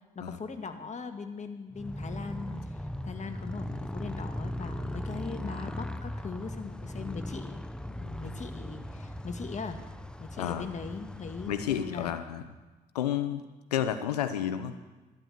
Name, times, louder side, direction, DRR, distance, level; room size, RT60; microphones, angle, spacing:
voice 1, 0.2-9.8 10.2-12.1, left 5 dB, 35° left, 6 dB, 1.8 m, -40 dB
Motorcycle, 1.7-12.4, left 1 dB, 5° left, 0.9 m, -39 dB
voice 2, 10.4-10.7 11.5-12.4 12.9-13.4 13.7-14.8, left 10 dB, 90° left, 11 dB, 0.8 m, -30 dB
12.5 x 10.0 x 8.0 m, 1.2 s
hypercardioid pair, 50°, 20 cm